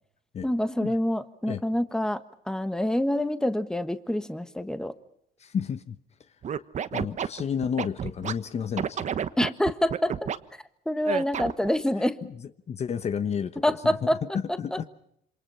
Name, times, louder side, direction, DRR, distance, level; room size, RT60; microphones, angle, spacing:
voice 1, 0.4-5.0 9.4-10.3 10.8-12.2 13.6-14.2 14.5-14.8, left 1 dB, 5° left, 1.4 m, -27 dB
voice 2, 5.4-6.0 6.9-9.2 12.7-14.1 14.3-14.8, left 7 dB, 40° left, 1.1 m, -31 dB
Scratching (performance technique), 6.4-8.3 8.8-10.4 11.0-11.7, right 8 dB, 45° right, 1.2 m, -30 dB
27.5 x 26.5 x 5.7 m
cardioid pair, 110°, 17 cm